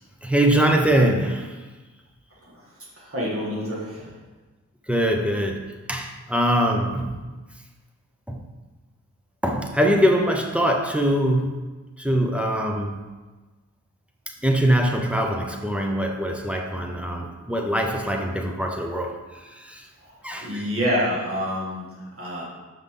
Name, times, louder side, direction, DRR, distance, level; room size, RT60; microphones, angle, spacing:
voice 1, 0.2-1.5 4.9-5.6 5.9-7.2 8.3-8.4 9.4-11.6 12.0-13.0 14.4-19.1 19.5-19.9 20.2-20.6, right 1 dB, 5° right, 1 dB, 0.8 m, -22 dB
voice 2, 3.0-4.2 20.1-22.4, equal, 45° right, -4 dB, 2.0 m, -28 dB
5.7 x 5.5 x 3.8 m, 1.3 s
wide cardioid pair, 95°, 30 cm